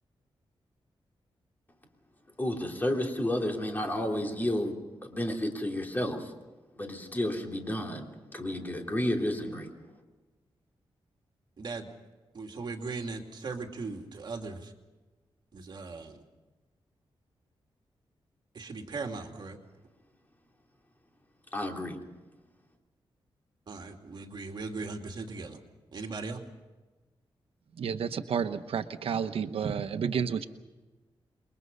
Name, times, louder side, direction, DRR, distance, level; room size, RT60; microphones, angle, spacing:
voice 1, 2.4-4.8 5.0-6.3 6.8-9.7 21.5-22.0, left 1 dB, 20° left, 2 dB, 3.3 m, -31 dB
voice 2, 11.6-11.9 12.3-14.7 15.5-16.2 18.5-19.6 23.7-25.6 25.9-26.4, right 3 dB, 50° right, 3 dB, 2.6 m, -38 dB
voice 3, 27.8-30.4, right 7 dB, 85° right, 9 dB, 1.0 m, -31 dB
28.0 x 22.5 x 5.5 m, 1.2 s
wide cardioid pair, 150°, 9 cm